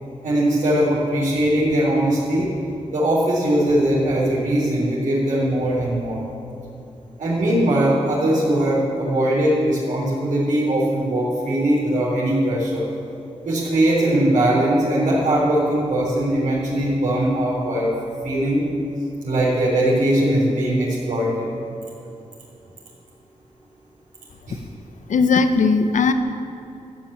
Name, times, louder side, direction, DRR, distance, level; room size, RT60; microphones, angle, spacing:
voice 1, 0.2-2.5 2.9-6.2 7.2-12.9 13.4-17.9 18.2-18.6 19.2-21.4 24.5-24.6, right 1 dB, 85° right, -9 dB, 3.8 m, -20 dB
voice 2, 25.1-26.1, left 4 dB, 80° left, 9 dB, 0.9 m, -17 dB
14.5 x 7.4 x 8.8 m, 2.7 s
wide cardioid pair, 130°, 13 cm